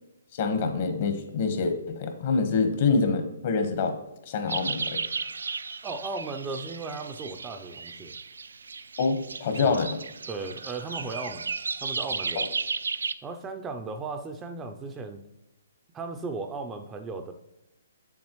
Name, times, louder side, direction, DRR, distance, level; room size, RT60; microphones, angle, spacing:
voice 1, 0.3-4.0 4.3-5.0 9.0-10.0 12.4-12.5, left 4 dB, 50° left, 7 dB, 1.1 m, -26 dB
sound 1, 4.5-13.1, right 4 dB, 80° right, 0.4 m, -34 dB
voice 2, 5.8-8.2 9.6-9.8 10.3-11.5 11.8-12.4 13.2-15.2 15.9-17.3, right 3 dB, 15° right, 5 dB, 0.5 m, -36 dB
7.2 x 7.2 x 3.1 m, 0.92 s
hypercardioid pair, 140°, 0 cm